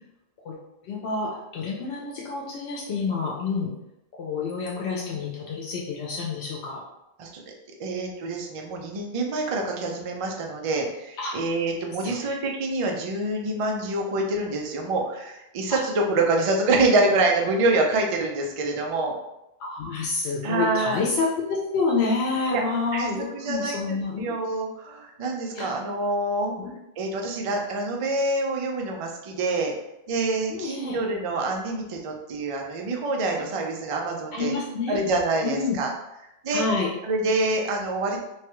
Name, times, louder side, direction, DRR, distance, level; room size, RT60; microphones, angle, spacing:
voice 1, 0.8-3.7 4.2-6.8 11.2-11.3 12.0-12.2 15.7-15.8 19.6-24.4 25.5-25.7 26.6-26.7 30.5-31.0 34.3-35.1 35.4-35.8 36.5-36.9, left 4 dB, 90° left, -3 dB, 0.8 m, -28 dB
voice 2, 7.8-19.1 20.4-21.0 22.5-22.6 22.9-26.5 27.0-29.7 30.1-34.5 34.9-35.9 36.4-36.6 37.0-38.2, right 2 dB, 50° right, 1 dB, 0.4 m, -26 dB
3.1 x 2.2 x 2.9 m, 0.89 s
omnidirectional pair, 1.1 m